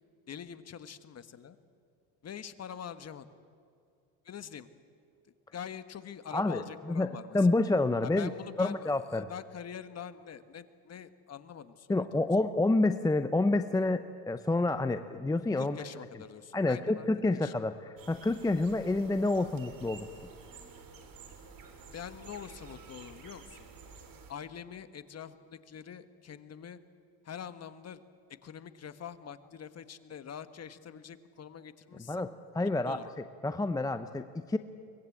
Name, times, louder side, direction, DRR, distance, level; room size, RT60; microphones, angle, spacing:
voice 1, 0.3-1.6 2.2-3.3 4.2-4.7 5.5-7.5 8.0-12.1 15.5-17.1 17.3-17.5 21.9-23.6 24.3-26.8 27.2-28.0 28.4-32.3 32.8-33.1, left 8 dB, 30° left, 12 dB, 1.5 m, -44 dB
voice 2, 6.3-8.3 8.6-9.3 11.9-15.8 16.5-20.1 32.1-33.0 33.4-34.6, left 2 dB, 10° left, 10 dB, 0.7 m, -28 dB
sound 1, 18.0-24.3, right 5 dB, 45° right, 3.9 m, -51 dB
24.0 x 20.5 x 8.6 m, 2.3 s
supercardioid pair, 90°, 48 cm